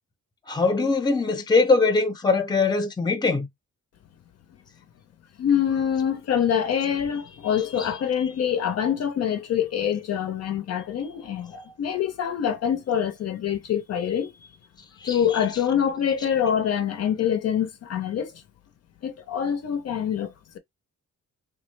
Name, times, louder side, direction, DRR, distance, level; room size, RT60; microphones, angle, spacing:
voice 1, 0.5-3.5 11.5-11.6 15.0-15.2, left 4 dB, 15° left, 0.6 m, -22 dB
voice 2, 5.4-14.5 15.0-18.3 19.0-20.6, left 8 dB, 55° left, 0.5 m, -25 dB
3.0 x 2.3 x 3.1 m
cardioid pair, 135°, 30 cm